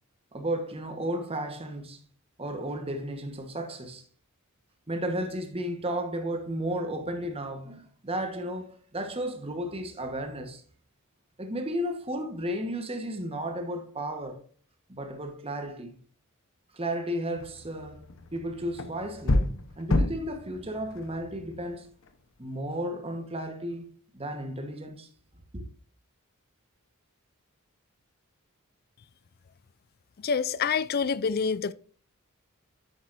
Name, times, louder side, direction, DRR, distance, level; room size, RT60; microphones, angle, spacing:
voice 1, 0.3-2.0 2.4-4.0 4.9-10.6 11.4-14.4 14.9-16.0 16.7-19.5 19.8-21.9 22.4-23.9 24.1-25.1 25.5-25.7, right 1 dB, 25° right, 1.2 m, -33 dB
sound 1, 17.3-22.2, left 1 dB, 60° left, 1.0 m, -31 dB
voice 2, 30.2-31.7, left 5 dB, 45° left, 0.4 m, -27 dB
10.0 x 8.8 x 2.6 m
head